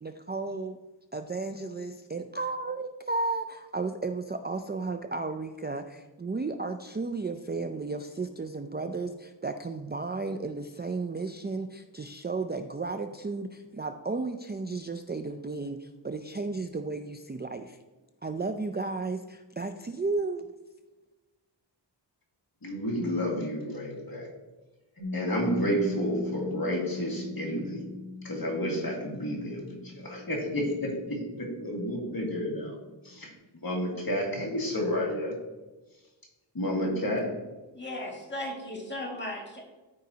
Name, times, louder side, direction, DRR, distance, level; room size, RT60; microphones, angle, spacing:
voice 1, 0.0-0.8 1.1-17.8 18.2-20.5, right 3 dB, 25° right, 6 dB, 0.4 m, -34 dB
voice 2, 22.6-24.3 25.1-27.9 28.2-32.8 33.0-33.3 33.6-35.3 36.5-37.3, equal, 50° left, -2 dB, 2.1 m, -30 dB
Piano, 25.0-32.3, left 3 dB, 75° right, 1.4 m, -40 dB
voice 3, 37.7-39.7, left 1 dB, 25° left, -1 dB, 2.0 m, -36 dB
13.5 x 5.0 x 2.8 m, 1.2 s
wide cardioid pair, 60°, 45 cm